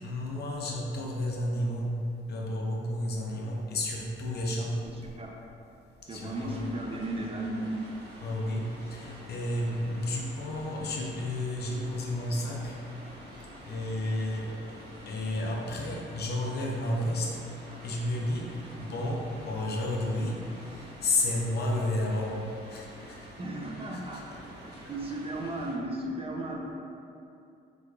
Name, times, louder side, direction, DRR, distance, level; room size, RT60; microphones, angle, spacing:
voice 1, 0.0-1.9 2.3-4.8 6.1-6.6 8.2-12.8 13.6-14.6 15.1-17.3 17.8-20.4 20.7-22.4 22.7-23.3 23.9-24.4, left 1 dB, 55° left, -2 dB, 0.6 m, -32 dB
voice 2, 4.8-5.3 6.1-7.7 23.4-24.2 24.6-26.7, right 1 dB, 30° right, 0 dB, 0.4 m, -35 dB
sound 1, 6.3-25.7, equal, 60° right, 0.9 m, -47 dB
4.7 x 2.3 x 2.2 m, 2.6 s
cardioid pair, 90°, 20 cm